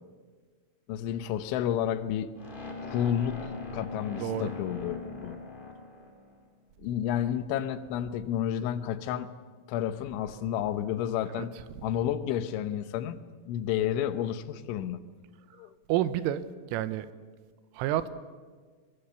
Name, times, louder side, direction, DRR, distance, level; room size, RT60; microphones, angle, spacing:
voice 1, 0.9-2.3 2.8-5.4 6.8-9.3 9.7-11.5 11.8-13.2 13.5-15.0 15.6-15.7, left 10 dB, 80° left, 3.3 m, -31 dB
sound 1, 2.4-6.5, left 3 dB, 15° left, 2.0 m, -40 dB
voice 2, 4.2-4.5 11.4-11.5 11.7-11.8 15.9-17.1 17.7-18.1, right 12 dB, 85° right, 3.4 m, -29 dB
23.5 x 23.0 x 6.9 m
omnidirectional pair, 5.6 m